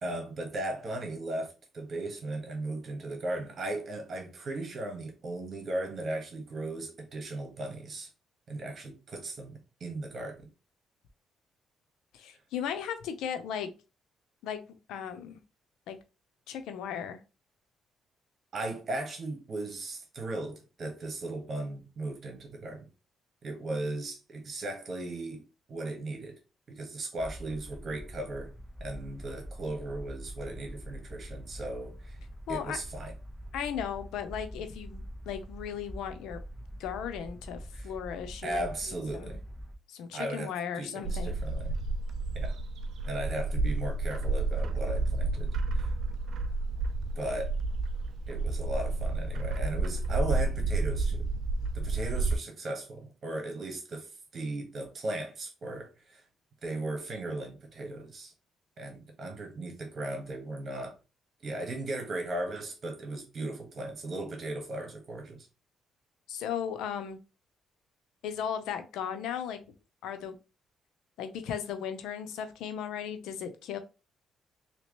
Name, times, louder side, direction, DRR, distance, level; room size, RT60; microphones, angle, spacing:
voice 1, 0.0-8.1 8.5-10.4 18.5-22.9 23.4-26.4 26.7-28.5 28.8-32.2 32.5-33.1 37.7-37.9 38.4-39.4 40.1-41.8 42.3-42.6 43.0-45.9 47.2-47.5 48.3-51.3 51.7-56.2 56.6-58.3 58.8-60.9 61.4-65.5, right 2 dB, 50° right, 1.4 m, -37 dB
voice 2, 12.1-13.7 14.4-14.6 14.9-15.4 15.9-16.0 16.5-17.2 32.5-32.8 33.5-36.4 36.8-39.4 39.9-41.3 66.3-67.2 68.2-69.6 70.0-70.3 71.2-73.8, left 8 dB, 90° left, 0.6 m, -36 dB
sound 1, 27.2-39.7, equal, 5° left, 0.9 m, -44 dB
Bird, 41.0-52.4, right 3 dB, 70° right, 0.4 m, -30 dB
3.3 x 2.9 x 2.9 m
cardioid pair, 90°, 0 cm